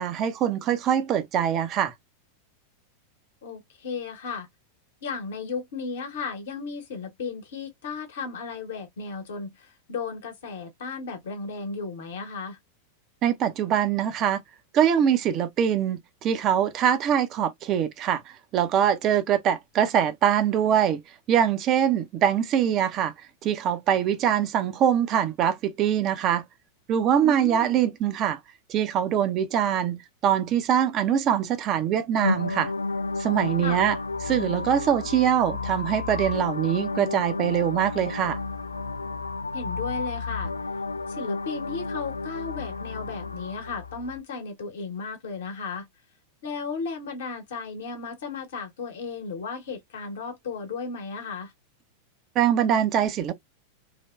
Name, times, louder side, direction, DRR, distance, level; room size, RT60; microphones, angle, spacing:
voice 1, 0.0-1.9 13.2-14.4 14.7-21.0 21.3-23.1 23.4-26.5 26.9-28.4 28.7-32.7 33.2-34.0 34.2-38.4 52.4-53.3, right 9 dB, 35° right, 0.5 m, -23 dB
voice 2, 3.4-4.5 5.0-12.6 27.2-27.8 33.6-33.8 39.5-40.5 41.1-45.9 46.4-51.5, left 4 dB, 60° left, 1.0 m, -35 dB
sound 1, 32.2-44.2, left 3 dB, 80° left, 0.3 m, -32 dB
3.2 x 2.1 x 2.3 m
figure-of-eight pair, 90°, 0 cm